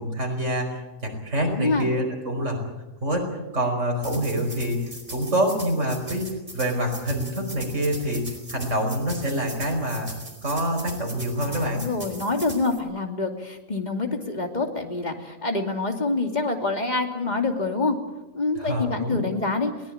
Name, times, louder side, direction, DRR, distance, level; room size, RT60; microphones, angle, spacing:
voice 1, 0.0-2.7 3.0-3.3 3.5-10.1 10.4-11.9 18.6-19.3, equal, 65° right, 2 dB, 5.4 m, -26 dB
voice 2, 1.5-1.9 11.4-18.0 18.3-19.7, left 3 dB, 35° left, 4 dB, 2.8 m, -26 dB
sound 1, 4.0-12.8, right 2 dB, 40° right, 4.0 m, -40 dB
22.0 x 18.5 x 8.6 m, 1.1 s
omnidirectional pair, 1.3 m